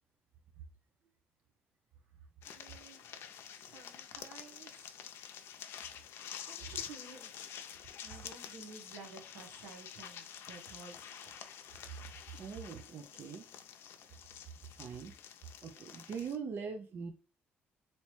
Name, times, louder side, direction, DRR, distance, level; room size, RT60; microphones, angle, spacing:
sound 1, 2.4-16.4, left 9 dB, 70° left, 0.5 m, -48 dB
voice 1, 2.5-4.9 6.5-7.3 8.0-11.3, right 4 dB, 90° right, 0.9 m, -53 dB
voice 2, 12.3-13.5 14.8-15.1 15.6-17.1, right 6 dB, 55° right, 0.5 m, -42 dB
3.1 x 2.8 x 3.1 m
cardioid pair, 90°, 4 cm